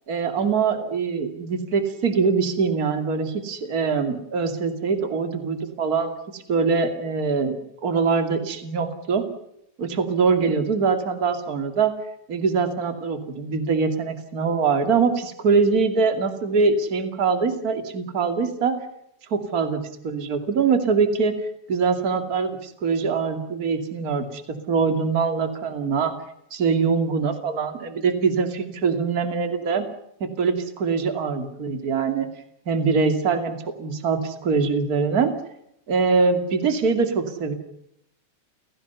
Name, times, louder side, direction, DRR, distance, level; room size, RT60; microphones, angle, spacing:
voice 1, 0.1-9.2 9.8-11.9 12.3-18.8 19.3-21.3 21.7-24.4 24.7-26.1 26.5-29.9 30.2-32.3 32.7-35.3 35.9-37.5, right 5 dB, 30° right, 8 dB, 2.7 m, -23 dB
29.0 x 17.5 x 7.0 m, 0.76 s
omnidirectional pair, 3.5 m